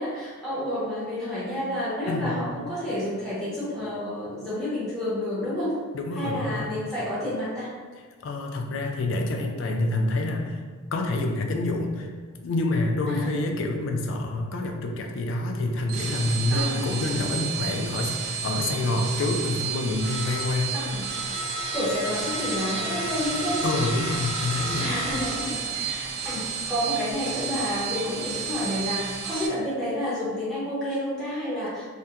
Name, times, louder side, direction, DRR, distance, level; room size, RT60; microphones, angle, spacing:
voice 1, 0.0-5.8 6.1-7.7 13.1-13.3 16.5-16.8 20.7-21.1 21.7-23.6 24.8-31.9, left 1 dB, 5° left, -10 dB, 0.7 m, -30 dB
voice 2, 2.1-2.4 5.9-6.7 8.2-10.6 10.9-12.1 12.4-20.8 23.6-25.0, left 2 dB, 60° left, 3 dB, 0.3 m, -27 dB
sound 1, 15.8-29.5, right 5 dB, 70° right, 0.4 m, -31 dB
2.3 x 2.1 x 2.8 m, 1.5 s
head